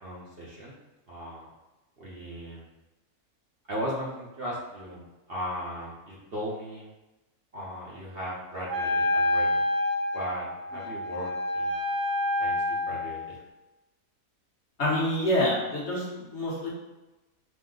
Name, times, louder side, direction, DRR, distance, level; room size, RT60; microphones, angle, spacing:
voice 1, 0.0-0.8 1.1-1.5 2.0-2.7 3.7-6.9 7.5-9.6 10.1-11.8 12.4-13.3, equal, 50° right, -6 dB, 0.8 m, -37 dB
Wind instrument woodwind instrument, 8.7-13.2, left 1 dB, 90° right, 0.4 m, -28 dB
voice 2, 14.8-16.7, left 1 dB, 55° left, -4 dB, 1.1 m, -27 dB
5.1 x 2.1 x 3.7 m, 1.0 s
omnidirectional pair, 1.6 m